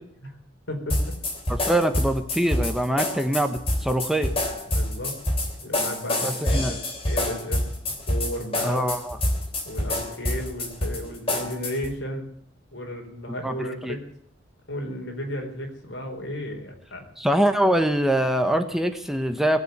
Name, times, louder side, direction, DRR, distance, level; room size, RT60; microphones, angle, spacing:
voice 1, 0.7-1.2 4.7-5.1 5.6-7.7 8.1-8.8 9.6-12.2 12.7-14.1 14.7-17.1, left 1 dB, 80° left, 2 dB, 4.4 m, -34 dB
sound 1, 0.9-11.9, left 1 dB, 30° left, 3.3 m, -27 dB
voice 2, 1.5-4.3 6.2-6.8 8.6-9.2 13.4-13.5 13.8-14.0 17.2-19.6, right 1 dB, ahead, 6 dB, 1.1 m, -23 dB
19.5 x 7.8 x 9.5 m, 0.68 s
head